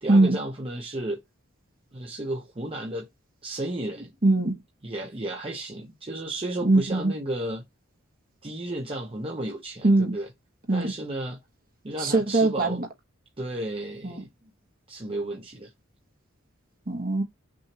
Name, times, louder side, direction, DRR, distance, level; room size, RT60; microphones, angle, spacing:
voice 1, 0.0-1.2 1.9-3.1 3.4-4.1 4.8-7.6 8.4-10.3 10.7-11.4 11.8-12.8 13.4-14.3 14.9-15.7, right 1 dB, 30° right, 0.8 m, -33 dB
voice 2, 4.2-4.6 6.6-7.1 9.8-10.1 10.7-10.9 12.0-12.9 14.0-14.2 16.9-17.2, right 2 dB, 45° right, 1.4 m, -21 dB
6.2 x 2.7 x 2.9 m
head